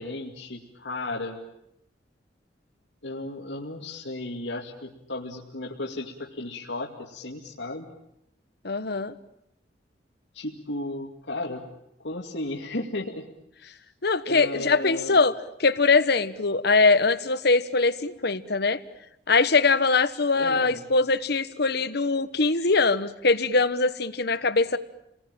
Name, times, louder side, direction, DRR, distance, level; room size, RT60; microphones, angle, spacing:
voice 1, 0.0-1.4 3.0-7.9 10.3-11.7 12.0-13.3 13.6-13.8 14.2-15.3 20.3-20.9, left 2 dB, 85° left, 0 dB, 2.5 m, -34 dB
voice 2, 8.6-9.1 14.0-18.8 19.3-24.8, left 3 dB, 65° left, 13 dB, 1.3 m, -22 dB
30.0 x 20.0 x 8.9 m, 0.81 s
head